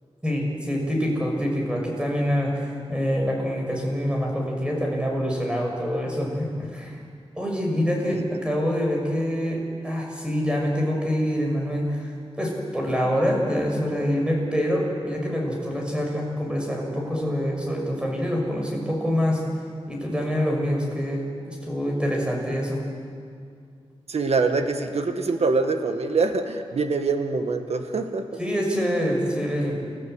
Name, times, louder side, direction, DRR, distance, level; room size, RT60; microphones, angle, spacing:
voice 1, 0.2-7.0 7.3-12.1 12.4-19.4 19.9-22.8 28.4-29.7, equal, 10° right, -1 dB, 6.4 m, -25 dB
voice 2, 24.1-28.3, right 4 dB, 75° right, 6 dB, 1.5 m, -24 dB
29.5 x 15.0 x 8.0 m, 2.2 s
wide cardioid pair, 95°, 11 cm